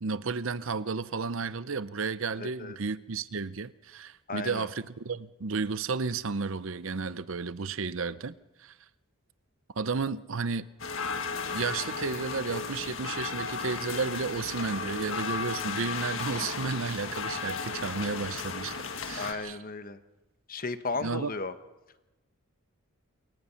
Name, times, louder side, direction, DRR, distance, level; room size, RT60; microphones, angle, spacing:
voice 1, 0.0-8.7 9.8-10.7 11.5-18.8 19.0-19.6 21.0-21.3, right 4 dB, 60° right, 0.7 m, -32 dB
voice 2, 2.4-2.8 4.3-4.7 19.2-20.0 20.5-21.5, left 3 dB, 40° left, 1.1 m, -35 dB
sound 1, 10.8-19.3, left 5 dB, 60° left, 1.7 m, -35 dB
28.0 x 23.0 x 5.8 m
head